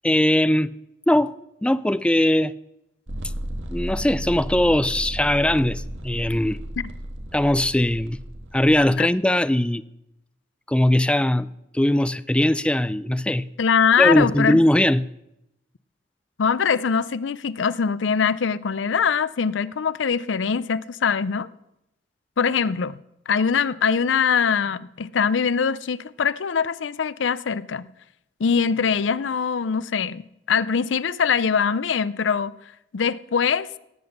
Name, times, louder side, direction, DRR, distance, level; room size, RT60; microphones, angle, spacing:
voice 1, 0.0-0.7 1.1-1.3 1.6-2.5 3.7-6.6 7.3-8.2 8.5-9.8 10.7-11.5 11.7-13.5 14.0-15.1, left 1 dB, 5° left, 0.4 m, -20 dB
sound 1, 3.1-9.0, equal, 90° right, 1.6 m, -34 dB
voice 2, 13.6-14.6 16.4-21.5 22.4-23.0 23.3-27.9 28.4-32.5 32.9-33.7, left 6 dB, 75° left, 0.5 m, -22 dB
18.0 x 7.8 x 6.6 m
head